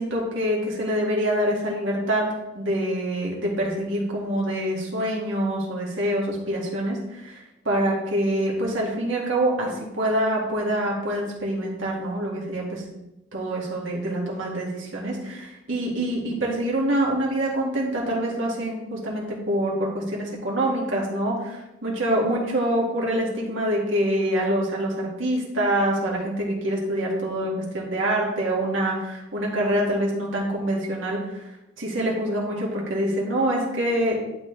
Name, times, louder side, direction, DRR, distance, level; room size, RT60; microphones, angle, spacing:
voice 1, 0.0-2.3 2.5-12.8 13.3-31.5 31.8-34.1, right 1 dB, 85° right, -3 dB, 2.1 m, -25 dB
11.5 x 4.2 x 3.4 m, 0.95 s
head